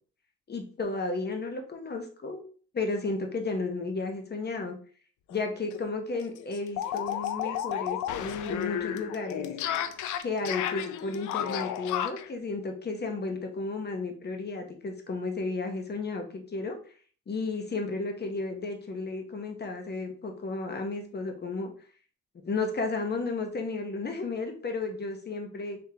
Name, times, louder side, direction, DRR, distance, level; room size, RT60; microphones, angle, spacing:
voice 1, 0.5-2.4 2.7-4.8 5.3-9.5 10.2-16.8 17.3-21.7 22.4-25.8, left 3 dB, 35° left, 4 dB, 0.9 m, -33 dB
sound 1, 5.3-5.4 5.7-5.8 6.1-12.3, left 10 dB, 80° left, 0.5 m, -32 dB
3.6 x 3.5 x 2.8 m, 0.43 s
cardioid pair, 90°, 30 cm